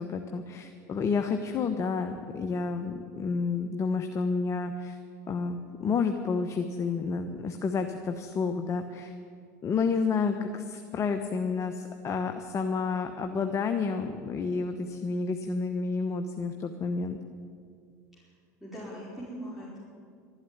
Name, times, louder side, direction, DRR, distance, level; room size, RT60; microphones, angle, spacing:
voice 1, 0.0-5.0 5.3-9.1 9.6-17.2, left 4 dB, 35° left, 6 dB, 1.0 m, -30 dB
voice 2, 18.6-19.8, equal, ahead, -8 dB, 5.0 m, -40 dB
12.5 x 11.5 x 9.9 m, 2.3 s
hypercardioid pair, 95°, 9 cm